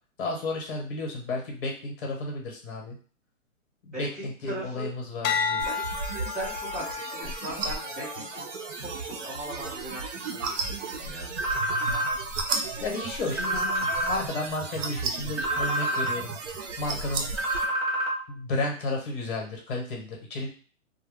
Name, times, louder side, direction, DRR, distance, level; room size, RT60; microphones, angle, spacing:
voice 1, 0.2-2.9 3.8-5.6 12.8-16.3 16.8-17.3 18.3-20.5, left 2 dB, 40° left, 0 dB, 1.1 m, -32 dB
voice 2, 3.9-4.9 5.6-5.7 6.3-8.5 8.8-11.3, right 1 dB, ahead, -14 dB, 0.7 m, -39 dB
sound 1, 5.2-9.7 10.3-10.7, left 6 dB, 85° left, 0.5 m, -34 dB
sound 2, 5.6-17.7, right 4 dB, 65° right, 0.6 m, -34 dB
sound 3, 11.4-12.1 13.4-14.1 15.4-16.1 17.4-18.1, right 1 dB, 30° right, 1.2 m, -27 dB
2.2 x 2.1 x 3.3 m, 0.41 s
hypercardioid pair, 160°, 39 cm